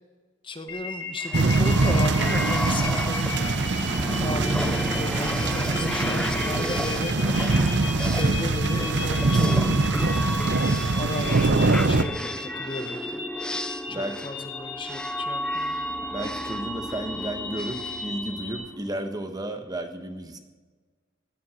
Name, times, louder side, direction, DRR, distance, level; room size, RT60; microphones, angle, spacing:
voice 1, 0.4-3.3 4.1-7.2 8.2-9.8 10.8-13.2 13.9-15.8, left 2 dB, 25° left, 7 dB, 0.9 m, -35 dB
sound 1, 0.7-18.6, left 4 dB, 70° left, 5.8 m, -36 dB
sound 2, 1.2-18.9, left 1 dB, 5° left, 0.3 m, -33 dB
sound 3, 1.3-12.0, right 3 dB, 60° right, 0.7 m, -23 dB
voice 2, 10.2-10.6 13.9-14.2 16.1-20.4, right 1 dB, 20° right, 7 dB, 1.1 m, -33 dB
17.0 x 9.3 x 6.3 m, 1.4 s
head